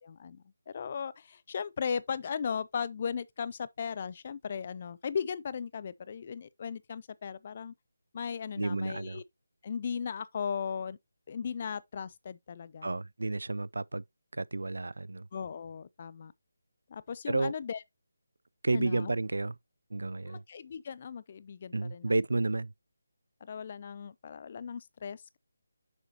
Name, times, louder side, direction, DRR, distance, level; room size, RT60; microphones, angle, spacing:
voice 1, 0.0-7.7 8.1-9.2 9.6-11.0 11.3-12.9 15.3-16.3 16.9-17.8 18.7-19.1 20.3-22.1 23.4-25.4, left 6 dB, 40° left, 0.4 m, -37 dB
voice 2, 8.6-9.2 12.8-14.0 14.3-15.3 17.3-17.5 18.6-19.5 19.9-20.4 21.7-22.7, right 2 dB, 75° right, 0.3 m, -31 dB
6.4 x 5.9 x 2.8 m
figure-of-eight pair, 160°, 0 cm